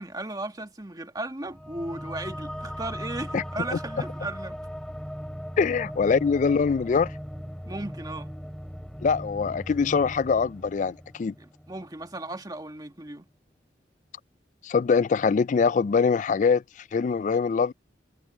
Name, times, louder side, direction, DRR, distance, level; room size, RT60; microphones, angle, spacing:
voice 1, 0.0-4.6 7.7-8.3 11.4-13.3, right 2 dB, 20° right, 1.8 m, -36 dB
sound 1, 1.5-12.4, equal, 5° left, 2.9 m, -39 dB
voice 2, 5.6-7.1 9.0-11.3 14.6-16.6 16.9-17.7, left 5 dB, 40° left, 0.3 m, -23 dB
head